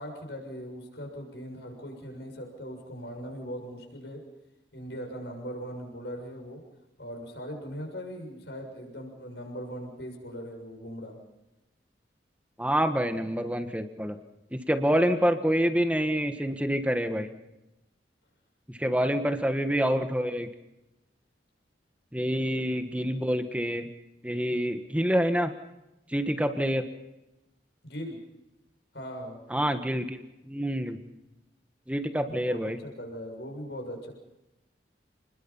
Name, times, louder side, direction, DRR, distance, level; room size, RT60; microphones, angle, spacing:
voice 1, 0.0-4.2 4.7-6.6 7.0-11.2 19.0-19.2 22.5-22.6 27.8-28.2 28.9-29.4 32.3-34.1, equal, 70° left, 2 dB, 7.0 m, -40 dB
voice 2, 12.6-14.2 14.5-17.3 18.7-20.5 22.1-23.9 24.2-25.5 26.1-26.8 29.5-31.0 31.9-32.8, equal, 5° right, 7 dB, 1.4 m, -27 dB
29.5 x 21.0 x 5.6 m, 0.95 s
head